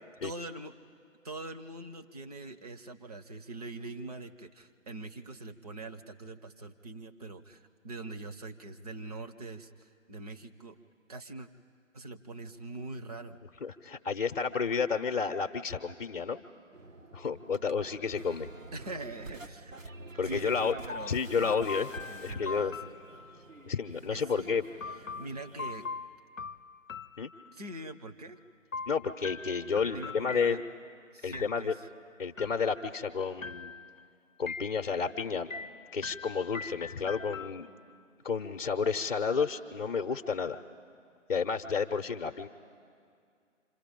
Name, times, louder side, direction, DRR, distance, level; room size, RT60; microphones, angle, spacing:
voice 1, 0.2-0.7 1.2-10.8 11.1-11.5 11.9-13.4 18.7-19.7 20.2-21.7 22.1-22.9 24.1-24.5 25.1-25.9 27.5-28.4 29.9-30.6 31.1-31.9, right 2 dB, 30° right, 7 dB, 0.9 m, -43 dB
voice 2, 13.6-16.4 17.1-18.5 20.2-20.7 21.0-21.9 22.2-22.7 23.7-24.6 27.2-27.3 28.9-30.6 31.2-31.7 32.2-33.7 34.4-35.5 35.9-37.7 38.2-40.6 41.3-42.5, left 5 dB, 45° left, 6 dB, 0.8 m, -31 dB
sound 1, 16.7-25.9, right 2 dB, 75° right, 1.3 m, -49 dB
sound 2, 20.9-23.6 24.8-27.8 28.7-30.9 31.3-31.9 32.4-33.1 33.4-34.1 34.5-35.1 35.5-38.0, left 4 dB, 90° left, 0.7 m, -42 dB
30.0 x 26.5 x 5.3 m, 2.3 s
figure-of-eight pair, 145°, 39 cm